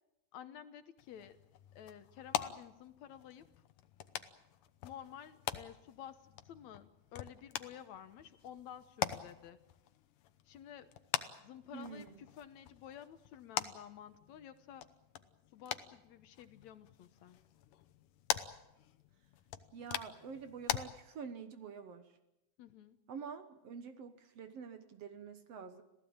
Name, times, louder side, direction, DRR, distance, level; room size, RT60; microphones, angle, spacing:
voice 1, 0.3-1.4 1.7-3.5 4.8-6.2 6.4-9.6 10.5-10.9 11.4-14.9 15.5-17.4 22.6-23.0, left 9 dB, 70° left, 10 dB, 2.2 m, -52 dB
sound 1, 1.0-20.8, left 12 dB, 85° left, 2.6 m, -44 dB
voice 2, 11.7-12.2 19.7-22.1 23.1-25.8, right 6 dB, 60° right, 9 dB, 2.0 m, -47 dB
27.0 x 16.5 x 8.8 m, 0.93 s
omnidirectional pair, 3.6 m